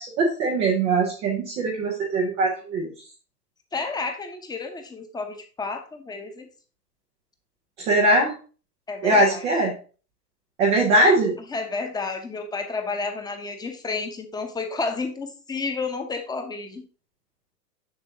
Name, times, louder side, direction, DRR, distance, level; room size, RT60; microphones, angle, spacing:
voice 1, 0.0-2.9 7.8-8.4 9.0-9.7 10.6-11.4, right 2 dB, 10° right, -2 dB, 0.3 m, -21 dB
voice 2, 3.7-6.5 8.9-9.5 11.5-16.8, left 4 dB, 10° left, 6 dB, 0.7 m, -31 dB
6.8 x 6.1 x 2.7 m, 0.37 s
hypercardioid pair, 110°, 48 cm